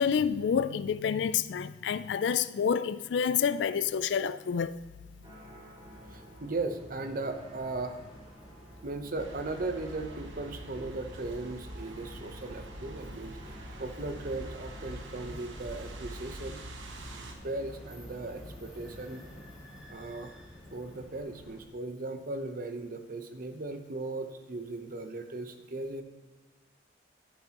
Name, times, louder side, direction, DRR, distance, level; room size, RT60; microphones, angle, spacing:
voice 1, 0.0-4.7, left 7 dB, 70° left, 0.3 m, -28 dB
sound 1, 5.2-16.1, equal, 30° right, 2.6 m, -52 dB
sound 2, 5.7-21.6, equal, 5° right, 2.8 m, -51 dB
voice 2, 6.1-8.0 8.8-13.4 13.8-16.6 17.4-19.2 19.9-20.4 20.7-26.0, right 2 dB, 50° right, 0.8 m, -37 dB
sound 3, 9.2-17.3, right 1 dB, 85° right, 1.1 m, -45 dB
12.5 x 7.8 x 2.9 m
head